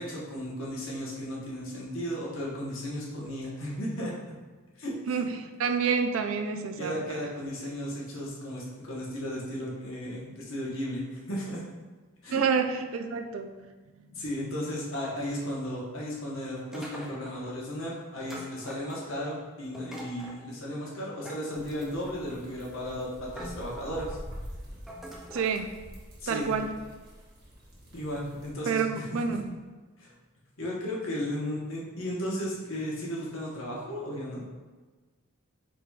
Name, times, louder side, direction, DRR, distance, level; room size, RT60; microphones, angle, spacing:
voice 1, 0.0-4.1 4.7-5.2 6.8-11.6 12.2-12.4 14.1-24.2 26.2-26.5 27.9-29.2 30.0-30.1 30.6-34.4, equal, 80° left, -4 dB, 1.1 m, -35 dB
voice 2, 5.1-7.3 12.3-13.7 14.0-14.1 25.3-25.8 26.3-26.7 28.7-29.5, right 5 dB, 80° right, 7 dB, 0.4 m, -29 dB
sound 1, 16.7-17.5 18.3-19.2 19.7-20.4 21.2-22.2 22.8-23.0 23.3-24.2 24.9-25.5, equal, ahead, 0.4 m, -44 dB
sound 2, 21.5-28.5, equal, 50° right, 1.0 m, -46 dB
4.6 x 3.8 x 2.3 m, 1.3 s
head